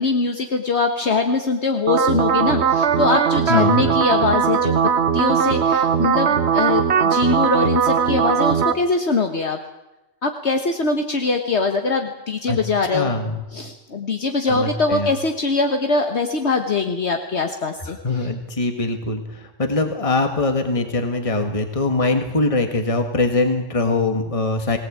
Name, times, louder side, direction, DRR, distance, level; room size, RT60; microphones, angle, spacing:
voice 1, 0.0-4.7 5.1-9.6 10.2-13.1 13.5-18.0, left 3 dB, 60° left, 5 dB, 1.7 m, -22 dB
sound 1, 1.9-8.7, right 7 dB, 60° right, 1.4 m, -19 dB
voice 2, 3.5-3.8 12.5-12.6 12.9-13.3 14.5-15.1 18.0-24.8, left 2 dB, 25° left, 5 dB, 1.8 m, -22 dB
22.0 x 18.0 x 8.7 m, 0.96 s
omnidirectional pair, 1.3 m